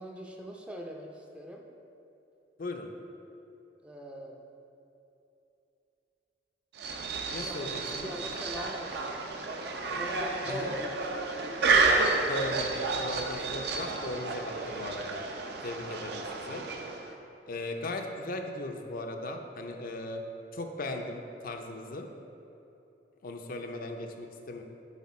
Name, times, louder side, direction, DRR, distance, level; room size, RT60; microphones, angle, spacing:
voice 1, 0.0-1.7 3.8-4.5 7.4-7.7 8.0-9.2 9.9-11.0 17.6-17.7, equal, 5° right, 1 dB, 0.5 m, -42 dB
sound 1, 6.8-17.2, right 3 dB, 65° right, 0.6 m, -31 dB
voice 2, 7.3-8.1 10.5-10.8 12.3-12.7 13.0-15.2 15.6-16.6 17.5-20.2 20.5-22.1 23.2-24.6, left 1 dB, 55° left, 4 dB, 0.5 m, -37 dB
8.3 x 4.3 x 4.2 m, 2.9 s
head